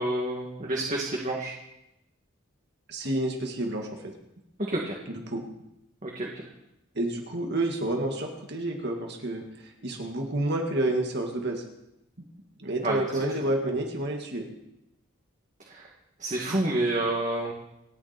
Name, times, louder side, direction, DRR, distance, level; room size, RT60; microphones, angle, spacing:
voice 1, 0.0-1.5 4.7-5.0 6.0-6.3 12.8-13.0 16.2-17.5, right 1 dB, 35° right, -2 dB, 2.4 m, -28 dB
voice 2, 2.9-4.1 5.1-5.4 7.0-9.4 9.8-11.6 12.6-14.5 16.5-16.6, right 1 dB, 55° right, 2 dB, 2.1 m, -29 dB
28.5 x 10.0 x 4.4 m, 0.87 s
head